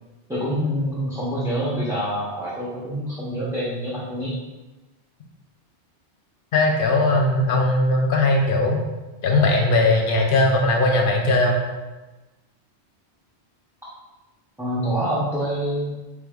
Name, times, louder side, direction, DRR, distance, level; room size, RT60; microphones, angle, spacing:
voice 1, 0.3-4.3 14.6-15.9, equal, 5° right, -8 dB, 0.5 m, -26 dB
voice 2, 6.5-8.8 9.2-11.6, left 2 dB, 60° left, 1 dB, 0.7 m, -19 dB
5.0 x 3.4 x 2.3 m, 1.1 s
omnidirectional pair, 1.1 m